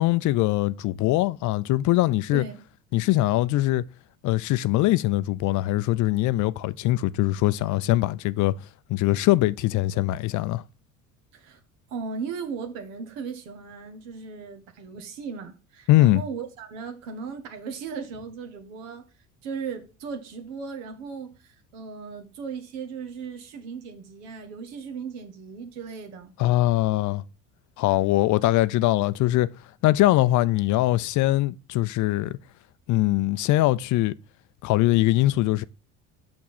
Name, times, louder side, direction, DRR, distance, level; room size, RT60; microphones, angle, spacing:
voice 1, 0.0-2.4 2.9-3.8 4.2-8.5 8.9-10.6 15.9-16.2 26.4-27.2 27.8-29.5 29.8-32.4 32.9-34.1 34.6-35.6, left 16 dB, 50° left, 0.5 m, -22 dB
voice 2, 2.3-2.6 11.3-11.6 11.9-19.0 19.4-26.3, right 5 dB, 75° right, 1.5 m, -37 dB
6.1 x 6.0 x 4.2 m
hypercardioid pair, 70°, 39 cm